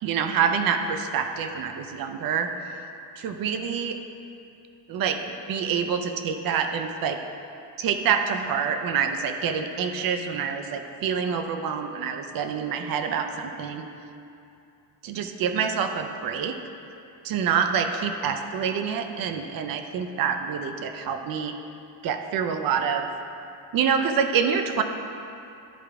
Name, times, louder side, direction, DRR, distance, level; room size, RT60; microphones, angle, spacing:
voice 1, 0.0-2.5 3.2-4.0 4.9-5.2 5.5-7.2 7.8-13.8 15.0-16.5 17.2-21.5 22.0-23.1 23.7-24.8, right 7 dB, 55° right, 7 dB, 0.6 m, -26 dB
11.0 x 4.8 x 3.4 m, 2.7 s
cardioid pair, 145°, 41 cm